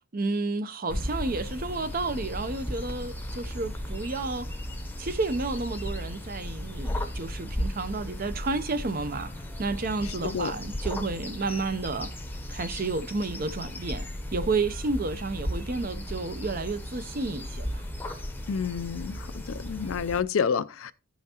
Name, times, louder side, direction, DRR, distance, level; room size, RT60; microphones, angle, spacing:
voice 1, 0.1-4.5 5.0-12.1 12.5-17.8, right 3 dB, 40° right, 0.6 m, -31 dB
sound 1, 0.9-20.2, left 1 dB, 10° left, 0.8 m, -35 dB
voice 2, 18.5-20.9, left 6 dB, 65° left, 0.5 m, -29 dB
15.0 x 5.7 x 2.9 m
head